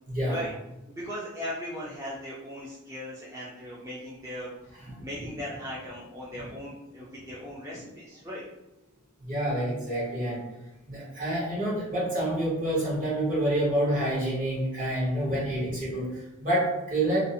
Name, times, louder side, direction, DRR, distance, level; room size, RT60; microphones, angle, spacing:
voice 1, 0.1-0.4 9.2-10.4 10.9-17.2, right 1 dB, 40° right, -6 dB, 0.9 m, -28 dB
voice 2, 0.9-8.4 15.3-15.6, equal, 15° right, -7 dB, 0.3 m, -38 dB
2.5 x 2.0 x 2.6 m, 0.99 s
head